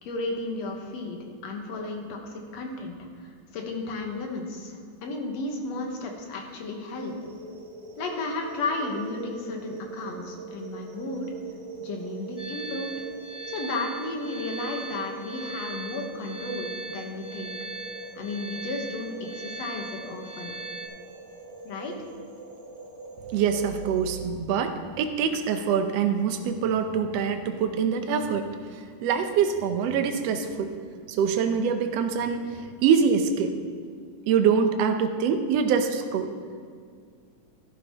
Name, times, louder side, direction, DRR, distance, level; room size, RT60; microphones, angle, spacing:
voice 1, 0.0-7.1 8.0-11.3 11.8-12.9 13.5-17.6 18.1-20.6 21.6-22.0, left 2 dB, 65° left, 2 dB, 2.3 m, -34 dB
sound 1, 6.9-24.2, right 3 dB, 30° right, 1.4 m, -42 dB
sound 2, 12.4-20.9, right 3 dB, 20° left, 2.9 m, -40 dB
voice 2, 23.3-30.7 31.1-33.6 34.3-36.3, right 6 dB, 70° right, 6 dB, 1.6 m, -25 dB
14.0 x 11.5 x 3.0 m, 2.1 s
omnidirectional pair, 3.5 m